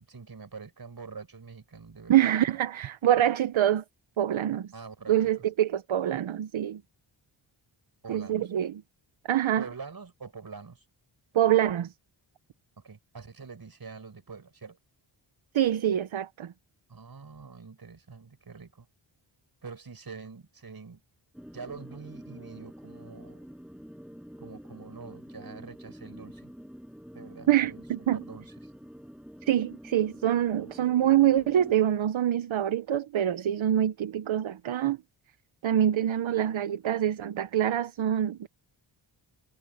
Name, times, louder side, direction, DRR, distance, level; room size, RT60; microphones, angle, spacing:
voice 1, 0.0-2.3 4.7-5.4 8.0-8.5 9.6-10.8 12.8-14.8 16.9-18.9 19.6-21.0 21.5-23.5 24.4-26.5 27.1-27.8 28.1-28.5, right 5 dB, 45° right, 6.8 m, -45 dB
voice 2, 2.1-3.8 4.2-4.7 5.1-6.8 8.1-8.8 9.3-9.7 11.3-11.9 15.5-16.5 27.5-28.2 29.4-35.0 35.6-38.5, right 11 dB, 70° right, 1.0 m, -25 dB
sound 1, 21.3-31.7, equal, ahead, 6.6 m, -47 dB
wide cardioid pair, 90°, 49 cm